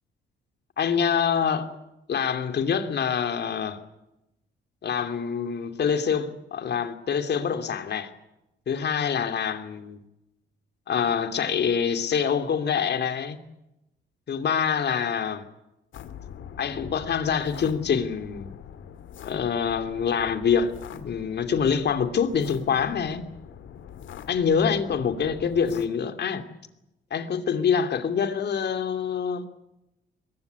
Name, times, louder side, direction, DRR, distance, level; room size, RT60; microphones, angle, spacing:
voice 1, 0.8-1.7 2.1-3.8 4.8-8.1 8.7-10.0 10.9-13.4 14.3-15.4 16.6-18.5 19.2-23.2 24.3-26.4 27.1-29.5, left 7 dB, 55° left, 2.9 m, -25 dB
sound 1, 15.9-25.9, left 8 dB, 75° left, 2.5 m, -43 dB
23.0 x 22.0 x 8.3 m
cardioid pair, 90°, 20 cm